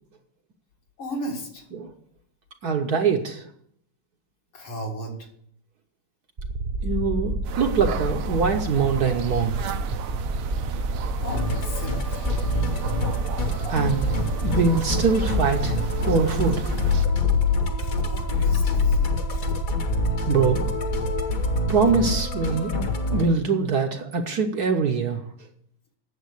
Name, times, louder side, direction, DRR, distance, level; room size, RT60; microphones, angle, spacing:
voice 1, 1.0-1.7 4.5-5.3 11.2-12.3 18.0-19.2, equal, 75° left, 0 dB, 3.0 m, -35 dB
voice 2, 2.6-3.5 6.8-9.8 13.7-14.1 14.4-16.7 20.2-20.7 21.7-22.8 23.1-25.5, right 5 dB, 60° right, 4 dB, 1.2 m, -23 dB
sound 1, 6.4-22.5, right 3 dB, 40° right, 1.0 m, -29 dB
sound 2, 7.4-17.1, right 8 dB, 85° right, 1.7 m, -36 dB
Musical instrument, 11.3-23.2, left 4 dB, 45° left, 1.4 m, -26 dB
9.4 x 7.4 x 8.1 m, 0.69 s
omnidirectional pair, 2.3 m